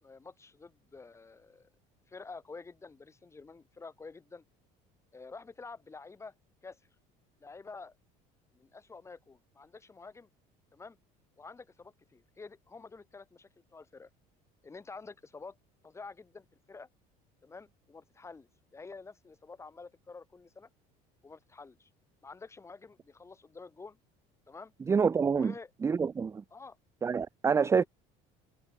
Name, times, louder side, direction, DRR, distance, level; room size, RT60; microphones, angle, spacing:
voice 1, 0.0-1.7 2.1-4.4 5.1-6.4 6.6-6.8 7.4-8.0 8.5-10.3 10.7-11.0 11.4-14.1 14.6-15.6 15.8-16.9 17.4-20.7 21.2-21.9 22.2-24.0 24.5-24.7 25.3-25.7 26.5-26.8 27.6-27.7, left 4 dB, 15° left, 5.3 m, -49 dB
voice 2, 24.9-25.5 25.8-26.4 27.0-27.8, right 6 dB, 15° right, 0.5 m, -27 dB
cardioid pair, 130°, 16 cm